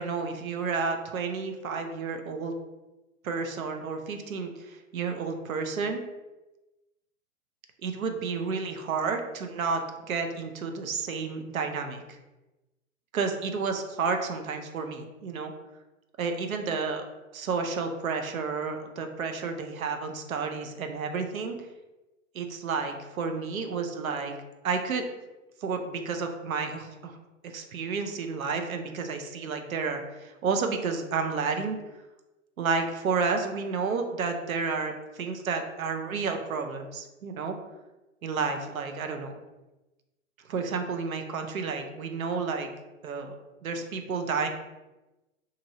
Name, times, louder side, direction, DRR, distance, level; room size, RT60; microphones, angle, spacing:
voice 1, 0.0-2.5 3.2-6.0 7.8-9.8 10.1-12.2 13.1-15.5 16.2-17.1 17.3-21.6 22.3-24.3 24.6-25.0 25.6-27.2 27.4-31.8 32.6-37.6 38.2-39.4 40.5-42.7 43.0-43.3 43.6-44.5, right 5 dB, 85° right, 5 dB, 0.6 m, -31 dB
3.0 x 2.6 x 2.6 m, 1.1 s
hypercardioid pair, 120°, 40 cm